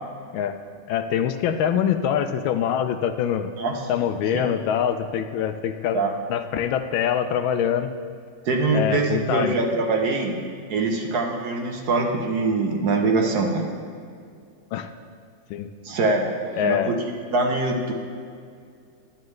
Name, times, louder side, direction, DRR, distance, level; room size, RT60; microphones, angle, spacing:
voice 1, 0.9-3.5 3.9-6.0 6.3-7.9 8.7-9.6 14.7-14.9 15.5-15.7 16.6-17.0, left 9 dB, 85° left, 9 dB, 1.4 m, -24 dB
voice 2, 8.4-10.4 10.7-13.7 15.8-16.3 16.6-16.9 17.3-17.9, right 3 dB, 60° right, 1 dB, 1.3 m, -23 dB
11.5 x 8.9 x 3.2 m, 2.2 s
omnidirectional pair, 2.1 m